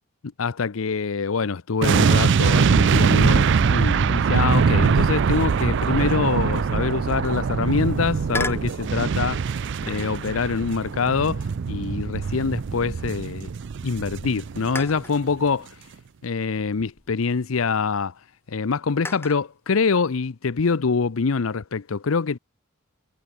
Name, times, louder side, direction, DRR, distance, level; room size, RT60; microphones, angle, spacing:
voice 1, 0.4-9.4 9.8-13.5 13.8-15.7 16.2-18.1 18.5-22.4, left 5 dB, 85° left, 0.7 m, -25 dB
sound 1, 1.8-15.0 15.2-15.4, right 6 dB, 60° right, 0.4 m, -22 dB
sound 2, 8.3-8.8 9.9-10.2 10.9-13.2 13.6-13.7 14.7-15.2 16.3-17.7 19.0-19.5, left 2 dB, 10° left, 1.9 m, -36 dB
head